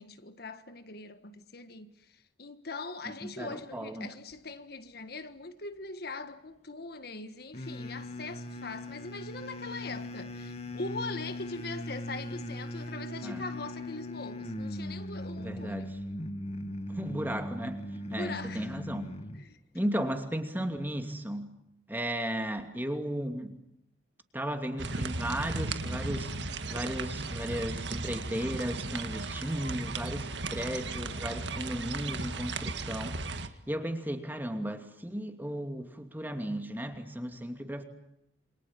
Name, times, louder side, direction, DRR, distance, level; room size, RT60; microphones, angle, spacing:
voice 1, 0.0-15.9 18.1-18.7 19.4-19.6, left 3 dB, 55° left, 1.5 m, -41 dB
voice 2, 3.0-4.1 13.2-13.4 15.4-16.0 16.9-17.8 18.1-19.1 19.7-21.5 21.9-23.6 24.3-37.8, equal, 10° right, 2.7 m, -35 dB
sound 1, 7.5-19.4, left 1 dB, 35° left, 2.0 m, -39 dB
sound 2, 24.8-33.5, right 3 dB, 65° right, 2.0 m, -36 dB
28.0 x 26.0 x 7.5 m
head